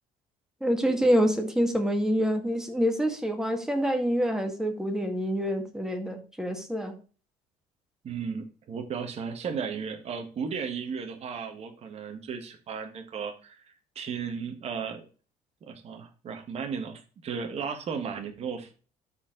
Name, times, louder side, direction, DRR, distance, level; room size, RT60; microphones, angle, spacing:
voice 1, 0.6-7.0, equal, 5° right, 4 dB, 2.1 m, -26 dB
voice 2, 8.0-15.1 15.6-18.7, right 6 dB, 45° right, 5 dB, 1.6 m, -35 dB
12.5 x 4.6 x 4.0 m, 0.37 s
cardioid pair, 110°, 15 cm